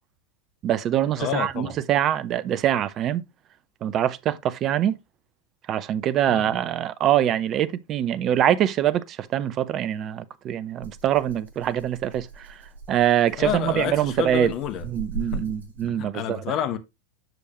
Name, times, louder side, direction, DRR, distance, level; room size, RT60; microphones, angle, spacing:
voice 1, 0.6-3.2 3.8-5.0 5.7-12.6 12.9-14.5 14.8-16.4, right 11 dB, 30° right, 0.5 m, -24 dB
voice 2, 1.2-1.7 6.3-6.5 13.4-14.8 15.3-15.4 15.8-16.8, left 10 dB, 35° left, 1.1 m, -29 dB
Rattle (instrument), 10.8-16.1, right 3 dB, 70° right, 1.8 m, -39 dB
7.7 x 6.4 x 3.0 m
figure-of-eight pair, 90°, 0 cm